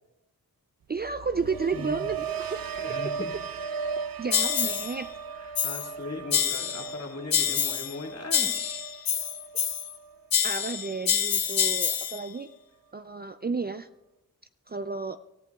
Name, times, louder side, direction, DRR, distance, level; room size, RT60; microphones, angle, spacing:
voice 1, 0.9-2.6 3.0-3.1 4.2-5.1 10.4-12.5 12.9-13.9 14.7-15.2, right 4 dB, 30° right, 10 dB, 0.4 m, -32 dB
sound 1, 1.0-11.1 11.4-11.9, right 6 dB, 85° right, 0.8 m, -37 dB
voice 2, 1.7-2.1 2.4-3.3 5.3-9.2, left 3 dB, 45° left, 1 dB, 2.2 m, -39 dB
sound 2, 4.3-4.9 5.5-5.9 6.3-6.9 7.3-8.0 8.3-10.0 10.3-12.2, left 8 dB, 85° left, 0.8 m, -27 dB
24.5 x 14.5 x 2.3 m, 0.92 s
wide cardioid pair, 115°, 34 cm